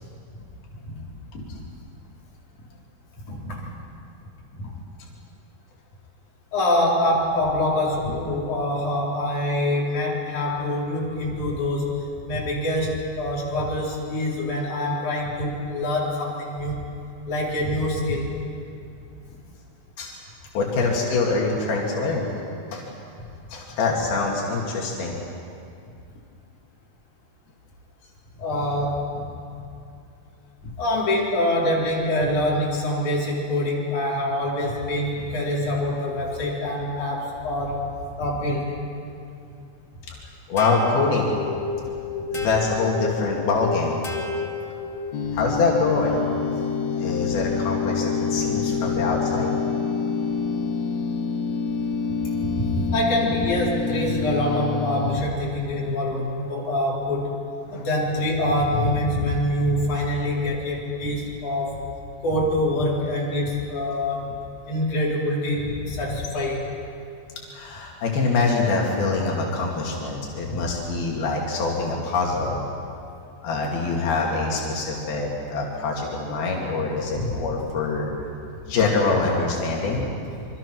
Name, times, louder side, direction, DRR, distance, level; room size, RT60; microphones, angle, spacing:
voice 1, 3.3-3.7 4.6-4.7 6.5-11.9 12.2-16.8 17.3-18.3 28.4-29.1 30.8-37.8 38.2-38.7 42.4-42.5 47.2-47.3 52.4-57.3 57.7-61.8 62.2-64.4 64.7-66.6 70.5-70.7 77.1-77.3, left 1 dB, 55° left, -4 dB, 5.5 m, -25 dB
voice 2, 20.5-22.3 22.7-22.8 23.5-25.2 40.5-41.3 42.3-44.0 45.3-46.2 47.0-49.5 57.7-57.9 67.5-72.6 73.4-78.1 78.7-80.1, left 3 dB, 85° left, -2 dB, 4.3 m, -24 dB
sound 1, 40.6-45.3, left 4 dB, 25° left, 2.0 m, -31 dB
sound 2, 45.1-55.2, left 5 dB, 70° left, 1.5 m, -26 dB
26.5 x 24.5 x 6.2 m, 2.5 s
omnidirectional pair, 4.2 m